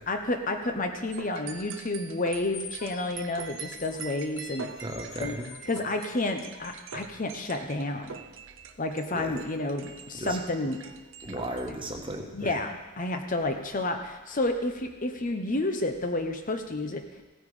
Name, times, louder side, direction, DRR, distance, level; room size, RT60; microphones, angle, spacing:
voice 1, 0.1-4.7 5.2-5.4 5.7-8.1 8.8-10.8 12.3-17.0, left 2 dB, 40° left, 5 dB, 0.9 m, -30 dB
sound 1, 1.1-11.7, right 6 dB, 60° right, 0.7 m, -43 dB
sound 2, 2.5-7.1, left 4 dB, 60° left, 1.4 m, -47 dB
voice 2, 4.8-5.5 9.1-9.4 10.1-10.4 11.2-12.6, right 1 dB, 25° right, 2 dB, 1.3 m, -36 dB
16.0 x 9.1 x 5.0 m, 1.2 s
head